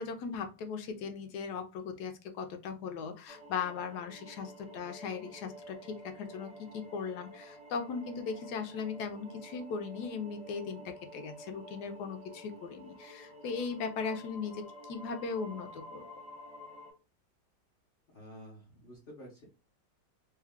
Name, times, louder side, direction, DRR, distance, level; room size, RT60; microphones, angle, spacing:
voice 1, 0.0-16.0, left 5 dB, 70° left, 6 dB, 1.1 m, -38 dB
sound 1, 3.3-16.9, equal, 10° right, 0.4 m, -50 dB
voice 2, 18.1-19.4, equal, 40° left, -4 dB, 0.8 m, -50 dB
3.1 x 2.3 x 3.5 m, 0.30 s
omnidirectional pair, 2.0 m